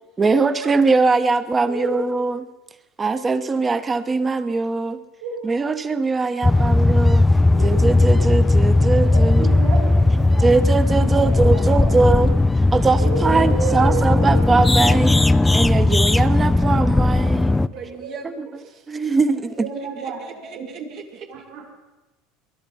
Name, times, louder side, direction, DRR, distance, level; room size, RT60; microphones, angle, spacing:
voice 1, 0.2-2.5 3.0-5.0 5.4-7.2 7.6-9.5 10.4-12.3 12.7-15.2 15.5-17.5 18.2-18.5 18.9-19.7, right 3 dB, 20° right, 12 dB, 1.0 m, -21 dB
voice 2, 1.6-2.0 5.2-5.7 6.6-6.8 7.5-7.8 9.1-12.2 13.0-14.3 17.7-18.2 19.6-20.9 21.3-21.6, right 4 dB, 90° right, -7 dB, 7.2 m, -31 dB
sound 1, 6.4-17.7, left 2 dB, 10° left, 0.4 m, -17 dB
voice 3, 11.4-11.9 17.5-18.9 20.0-21.4, right 6 dB, 60° right, 2 dB, 1.6 m, -41 dB
21.0 x 11.0 x 5.5 m, 1.1 s
supercardioid pair, 105°, 0 cm